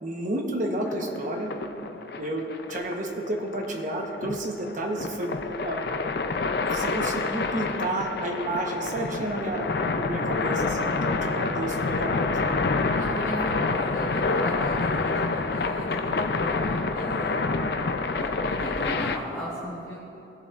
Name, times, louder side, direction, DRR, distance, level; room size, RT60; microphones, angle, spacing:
voice 1, 0.0-1.5 2.2-5.3 5.6-5.8 6.7-12.4, right 1 dB, 40° right, 1 dB, 1.0 m, -31 dB
sound 1, 0.8-19.2, left 3 dB, 55° left, 0.5 m, -28 dB
voice 2, 12.9-17.4 18.2-20.0, equal, 10° left, -10 dB, 1.4 m, -36 dB
18.0 x 7.1 x 2.5 m, 2.9 s
head